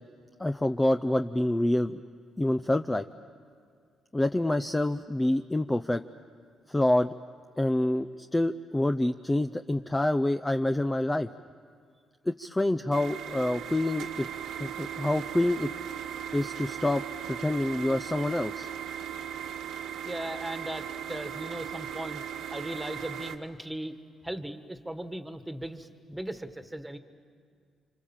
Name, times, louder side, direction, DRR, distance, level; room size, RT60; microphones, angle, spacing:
voice 1, 0.4-2.0 2.4-3.1 4.1-6.0 6.7-7.1 7.6-11.3 12.3-14.3 14.6-15.7 16.3-18.7, left 1 dB, 15° left, 8 dB, 0.6 m, -27 dB
sound 1, 12.9-23.4, right 9 dB, 85° right, 1.6 m, -38 dB
voice 2, 20.0-22.2 22.5-23.9 24.2-27.0, right 1 dB, 5° right, 8 dB, 1.7 m, -38 dB
29.5 x 25.5 x 7.4 m, 2.2 s
cardioid pair, 90°, 0 cm